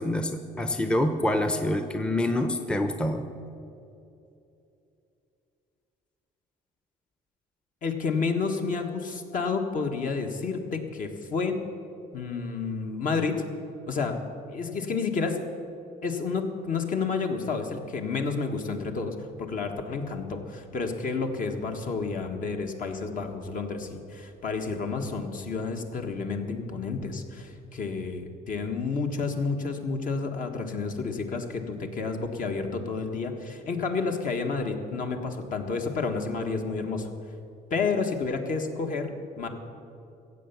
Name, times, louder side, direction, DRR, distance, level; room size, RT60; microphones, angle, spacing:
voice 1, 0.0-3.3, left 1 dB, 5° left, 7 dB, 0.7 m, -26 dB
voice 2, 7.8-11.6 12.1-13.3 13.9-14.2 14.5-15.4 16.0-37.1 37.7-39.5, left 4 dB, 55° left, 4 dB, 1.5 m, -30 dB
15.5 x 8.0 x 7.0 m, 2.7 s
cardioid pair, 110°, 17 cm